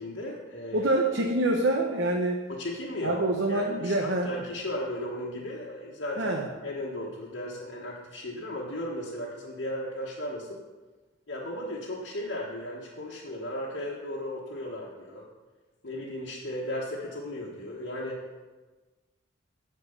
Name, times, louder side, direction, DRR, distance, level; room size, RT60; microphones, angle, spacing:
voice 1, 0.0-0.9 2.5-10.6 11.3-15.3 15.8-18.2, left 1 dB, 70° left, -5 dB, 1.3 m, -36 dB
voice 2, 0.7-2.4 3.0-4.3 6.2-6.5, right 2 dB, 70° right, 1 dB, 0.9 m, -26 dB
10.0 x 4.5 x 7.0 m, 1.3 s
head